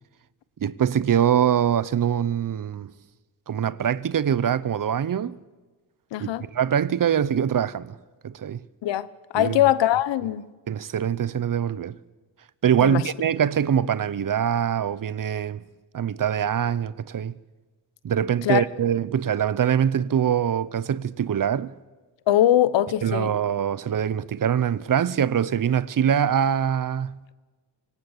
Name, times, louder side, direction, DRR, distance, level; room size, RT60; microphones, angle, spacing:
voice 1, 0.6-2.9 3.5-5.4 6.2-8.0 8.2-8.6 9.3-9.6 10.7-12.0 12.6-15.6 15.9-17.3 18.0-21.7 23.0-27.2, right 9 dB, 50° right, 0.9 m, -23 dB
voice 2, 6.1-6.5 8.8-9.1 9.3-10.5 12.8-13.0 18.4-18.6 22.3-23.4, left 12 dB, 90° left, 0.9 m, -21 dB
24.5 x 18.0 x 8.1 m
cardioid pair, 85°, 43 cm